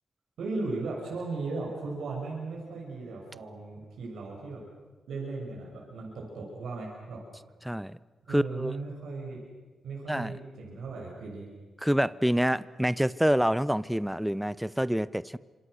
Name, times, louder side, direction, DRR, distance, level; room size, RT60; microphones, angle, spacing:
voice 1, 0.4-4.6 5.1-7.2 8.3-9.4 9.8-11.5, right 3 dB, 80° right, -2 dB, 6.3 m, -37 dB
voice 2, 7.6-8.0 8.3-8.8 10.1-10.3 11.8-15.4, equal, 5° right, 17 dB, 0.7 m, -27 dB
27.5 x 26.5 x 6.5 m, 1.3 s
cardioid pair, 65°, 0 cm